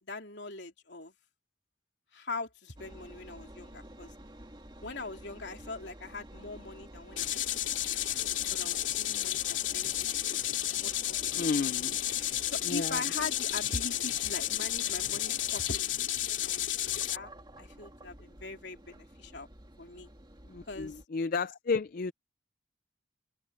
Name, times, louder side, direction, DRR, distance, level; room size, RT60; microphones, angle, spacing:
voice 1, 0.0-1.1 2.1-4.1 4.8-8.1 8.5-10.2 10.7-11.2 12.5-17.3 17.6-19.5 19.8-20.1 20.7-21.0, left 3 dB, 65° left, 3.5 m, -42 dB
Engine, 2.8-21.0, right 1 dB, 25° right, 2.1 m, -51 dB
sound 1, 7.2-17.2, left 12 dB, 90° left, 2.5 m, -32 dB
voice 2, 11.3-12.0 12.6-13.0 20.5-22.1, left 4 dB, 50° left, 0.4 m, -32 dB
open air
head